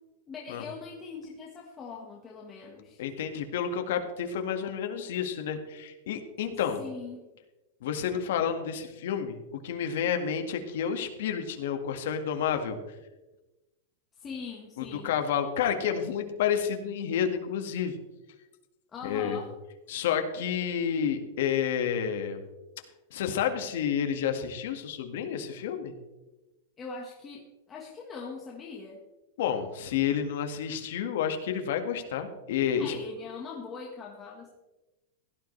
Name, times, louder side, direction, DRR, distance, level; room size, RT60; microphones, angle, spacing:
voice 1, 0.3-3.0 6.5-7.2 14.2-15.2 18.9-19.5 26.8-29.0 32.8-34.5, left 4 dB, 15° left, -2 dB, 1.5 m, -41 dB
voice 2, 3.0-6.8 7.8-12.8 14.8-18.0 19.0-19.4 19.9-22.4 23.1-25.9 29.4-32.9, left 8 dB, 65° left, 6 dB, 1.7 m, -30 dB
16.5 x 12.5 x 3.3 m, 1.1 s
supercardioid pair, 170°, 0 cm